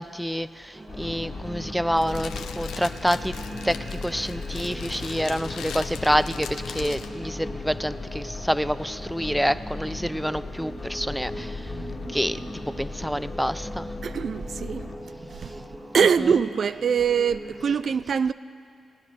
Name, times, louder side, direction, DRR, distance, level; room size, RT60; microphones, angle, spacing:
voice 1, 0.0-3.3 3.6-11.7 12.1-12.4 12.7-13.9 16.2-16.3, equal, ahead, 0.4 m, -27 dB
sound 1, 0.7-17.8, right 1 dB, 35° right, 2.1 m, -40 dB
sound 2, 0.9-15.0, left 3 dB, 45° left, 1.8 m, -38 dB
Fire, 2.0-7.1, left 7 dB, 85° left, 0.6 m, -39 dB
voice 2, 14.0-14.9 15.3-15.6 15.9-18.3, right 7 dB, 65° right, 0.3 m, -23 dB
18.0 x 9.7 x 6.3 m
supercardioid pair, 55°, 0 cm